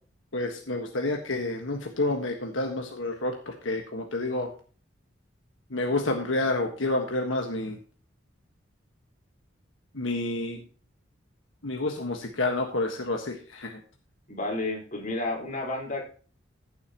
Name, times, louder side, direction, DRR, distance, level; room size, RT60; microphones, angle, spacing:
voice 1, 0.3-4.5 5.7-7.8 9.9-10.6 11.6-13.8, left 2 dB, 80° left, 3 dB, 1.5 m, -29 dB
voice 2, 14.3-16.1, left 2 dB, 40° left, -1 dB, 4.4 m, -31 dB
15.0 x 8.0 x 3.0 m, 0.40 s
head